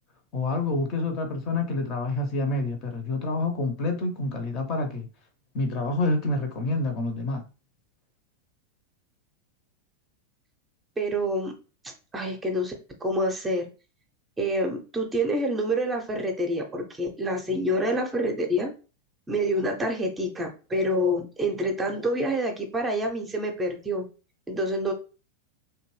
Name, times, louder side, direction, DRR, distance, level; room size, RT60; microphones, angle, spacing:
voice 1, 0.3-5.1 5.5-7.4, left 2 dB, 40° left, 0.6 m, -27 dB
voice 2, 11.0-11.5 12.1-12.7 13.0-13.7 14.4-18.7 19.3-24.1 24.5-24.9, equal, 15° right, 0.5 m, -27 dB
2.6 x 2.2 x 3.0 m
figure-of-eight pair, 90°, 0 cm